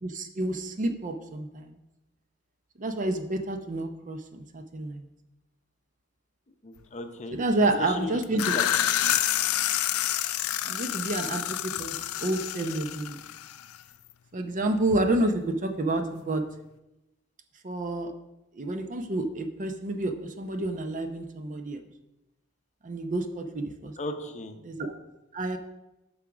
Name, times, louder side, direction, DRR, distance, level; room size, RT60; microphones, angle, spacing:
voice 1, 0.0-1.8 2.8-5.1 7.3-8.5 10.6-12.0 12.2-13.2 14.3-16.4 17.6-18.1 18.5-21.8 22.8-23.9 24.6-24.9 25.3-25.6, right 2 dB, 40° right, 6 dB, 0.7 m, -29 dB
voice 2, 6.6-7.4 7.9-8.2 8.5-8.6 24.0-24.6, left 2 dB, 35° left, 7 dB, 0.7 m, -36 dB
sound 1, 8.2-13.8, left 12 dB, 85° left, 0.4 m, -28 dB
8.6 x 4.8 x 6.0 m, 0.96 s
head